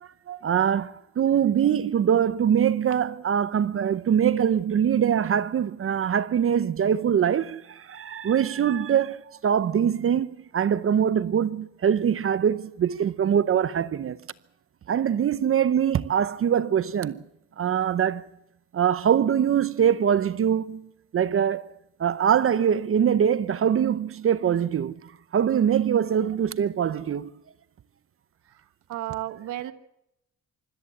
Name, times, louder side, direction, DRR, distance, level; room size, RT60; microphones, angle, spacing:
voice 1, 0.0-14.2 14.9-17.2 17.6-18.2 18.7-20.9 21.1-21.7 22.0-27.3, right 8 dB, 45° right, 0.8 m, -23 dB
voice 2, 28.5-29.7, right 14 dB, 90° right, 1.5 m, -34 dB
25.5 x 13.5 x 8.5 m
cardioid pair, 90°, 30 cm